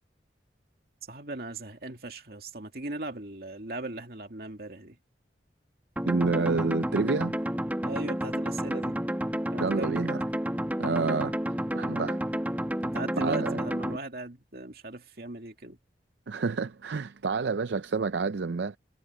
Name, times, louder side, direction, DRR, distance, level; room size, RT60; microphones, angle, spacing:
voice 1, 1.1-5.0 7.8-9.0 9.5-10.0 11.7-12.1 12.9-15.8, right 2 dB, 60° right, 2.5 m, -38 dB
sound 1, 6.0-14.0, equal, 10° right, 1.5 m, -30 dB
voice 2, 6.0-7.3 9.6-10.2 10.8-11.3 11.7-12.2 13.2-13.6 16.3-18.8, right 4 dB, 80° right, 0.5 m, -29 dB
head